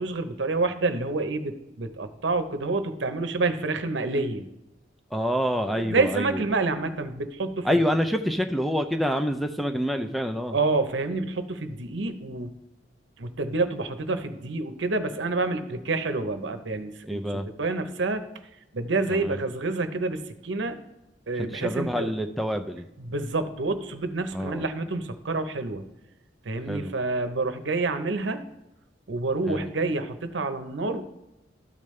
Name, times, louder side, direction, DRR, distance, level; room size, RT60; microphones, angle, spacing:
voice 1, 0.0-4.4 5.7-7.7 10.5-12.5 13.2-18.2 18.7-20.8 21.3-22.1 23.0-25.8 26.4-28.4 29.1-31.0, right 3 dB, 75° right, 8 dB, 0.8 m, -28 dB
voice 2, 5.1-6.4 7.6-10.6 17.1-17.5 19.1-19.4 21.4-22.9 24.3-24.7 26.7-26.9 29.5-29.7, equal, ahead, 6 dB, 0.5 m, -27 dB
13.5 x 5.2 x 3.2 m, 0.95 s
head